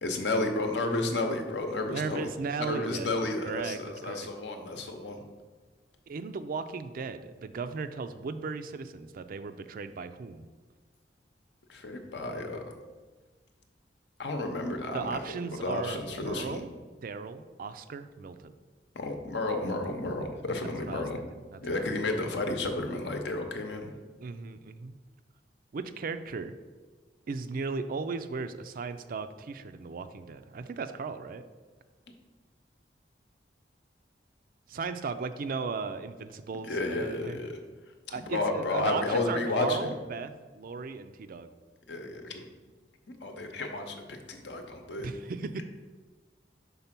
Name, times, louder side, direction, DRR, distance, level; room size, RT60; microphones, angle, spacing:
voice 1, 0.0-2.3 2.6-5.2 11.7-12.6 14.2-16.6 18.9-21.2 21.6-23.9 36.6-37.6 38.1-39.9 41.9-42.5 43.2-45.1, left 2 dB, 70° left, 4 dB, 0.8 m, -32 dB
voice 2, 1.9-3.8 4.0-4.3 6.1-10.4 14.9-16.7 17.0-18.5 20.6-21.1 21.5-21.9 24.2-25.0 25.7-26.6 27.3-31.4 34.7-37.4 38.1-41.5 45.0-45.6, right 4 dB, 50° right, 10 dB, 0.4 m, -36 dB
5.5 x 3.7 x 5.9 m, 1.3 s
head